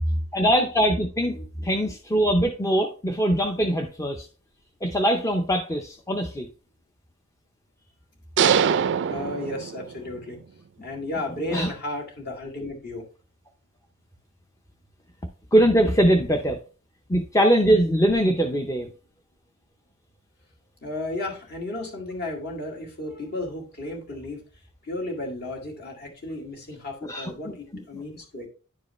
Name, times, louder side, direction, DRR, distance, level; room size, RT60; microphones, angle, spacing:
voice 1, 0.3-1.4 1.6-4.3 4.8-6.5 11.5-11.7 15.5-16.6 17.1-18.9 27.0-27.8, equal, 15° left, 3 dB, 0.6 m, -22 dB
voice 2, 1.3-1.7 9.1-10.4 10.8-13.0 20.8-24.4 24.8-28.5, left 1 dB, 50° left, 1 dB, 2.1 m, -33 dB
sound 1, 8.4-10.2, right 7 dB, 55° right, 0.4 m, -23 dB
10.5 x 4.7 x 3.1 m, 0.36 s
head